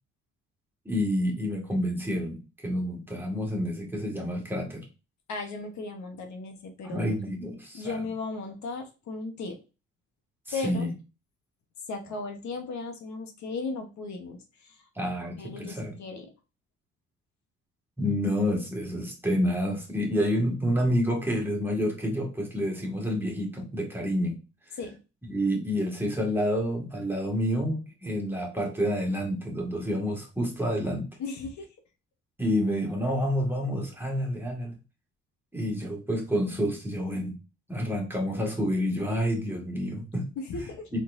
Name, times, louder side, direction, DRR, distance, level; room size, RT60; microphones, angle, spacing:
voice 1, 0.9-4.9 6.8-8.0 10.6-10.9 15.0-16.0 18.0-24.4 25.2-31.1 32.4-34.8 35.5-37.4 37.7-40.3, equal, 5° right, 0 dB, 1.8 m, -28 dB
voice 2, 5.3-7.0 7.7-9.6 10.5-10.9 11.9-14.8 15.4-16.3 24.8-25.0 31.2-31.7 40.4-40.9, left 3 dB, 65° left, 4 dB, 1.1 m, -36 dB
4.3 x 3.8 x 2.6 m, 0.30 s
cardioid pair, 90°, 30 cm